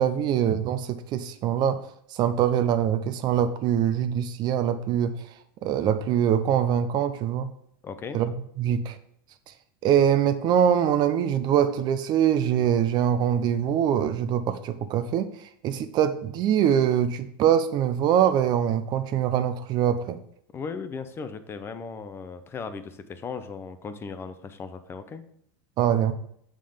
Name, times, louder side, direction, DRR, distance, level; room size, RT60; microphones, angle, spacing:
voice 1, 0.0-1.8 2.1-5.1 5.6-7.5 8.1-8.3 8.6-9.0 9.8-15.3 15.6-20.2 25.8-26.1, right 9 dB, 35° right, 11 dB, 0.6 m, -23 dB
voice 2, 7.8-8.2 20.5-25.2, left 5 dB, 20° left, 10 dB, 0.5 m, -37 dB
7.5 x 3.8 x 5.0 m, 0.69 s
supercardioid pair, 140°, 12 cm